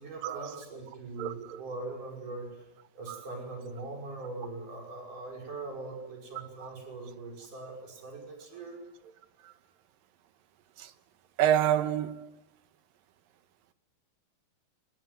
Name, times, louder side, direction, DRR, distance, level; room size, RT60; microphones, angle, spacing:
voice 1, 0.0-2.6 3.0-8.8, right 2 dB, 60° right, 7.4 m, -41 dB
voice 2, 1.2-1.6 3.1-3.2 10.8-10.9 11.4-12.3, right 11 dB, 80° right, 2.9 m, -27 dB
29.0 x 19.5 x 9.5 m
omnidirectional pair, 4.0 m